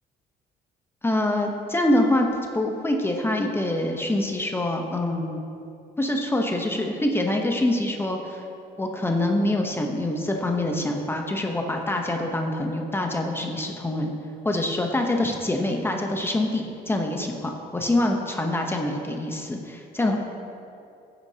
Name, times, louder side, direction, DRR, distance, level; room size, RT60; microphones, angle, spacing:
voice 1, 1.0-2.3 2.5-5.4 6.0-8.4 8.8-14.1 14.4-20.2, left 1 dB, 15° left, 2 dB, 0.9 m, -25 dB
14.0 x 8.2 x 2.8 m, 2.6 s
cardioid pair, 110°, 17 cm